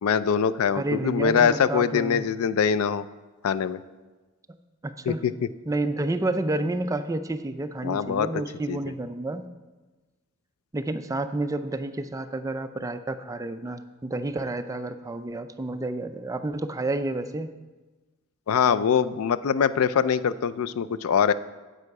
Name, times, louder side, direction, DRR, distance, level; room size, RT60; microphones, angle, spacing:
voice 1, 0.0-3.0 3.4-3.8 5.1-5.3 7.8-8.3 8.7-8.8 18.5-21.3, left 7 dB, 70° left, 15 dB, 0.4 m, -23 dB
voice 2, 0.7-2.3 4.8-5.2 5.7-9.5 10.7-17.5, right 2 dB, 15° right, 9 dB, 0.4 m, -30 dB
9.8 x 7.7 x 4.7 m, 1.2 s
head